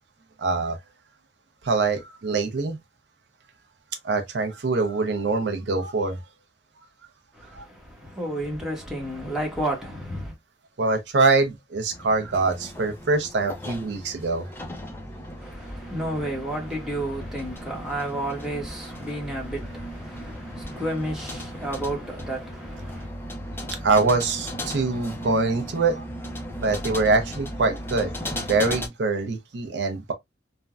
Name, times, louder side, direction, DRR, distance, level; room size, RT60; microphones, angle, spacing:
voice 1, 0.4-0.8 1.6-2.8 4.0-6.2 7.5-7.6 10.8-14.5 23.8-26.0 26.6-28.1 28.4-30.1, right 3 dB, 65° right, 0.6 m, -24 dB
voice 2, 7.3-10.3 15.4-23.1, right 1 dB, 5° right, 1.0 m, -32 dB
sound 1, 11.9-28.9, equal, 15° left, 0.6 m, -36 dB
3.3 x 2.2 x 2.3 m
head